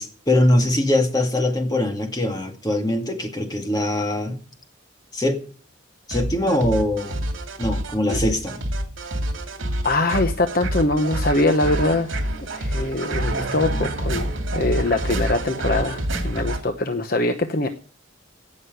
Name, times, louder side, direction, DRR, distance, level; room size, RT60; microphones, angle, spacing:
voice 1, 0.0-4.4 5.1-5.4 6.1-7.2 7.6-8.6, left 1 dB, 20° left, 2.2 m, -22 dB
sound 1, 6.1-16.6, right 1 dB, 70° right, 2.8 m, -27 dB
voice 2, 9.8-12.1 12.5-17.7, left 2 dB, 45° left, 1.0 m, -23 dB
17.5 x 6.5 x 8.0 m
head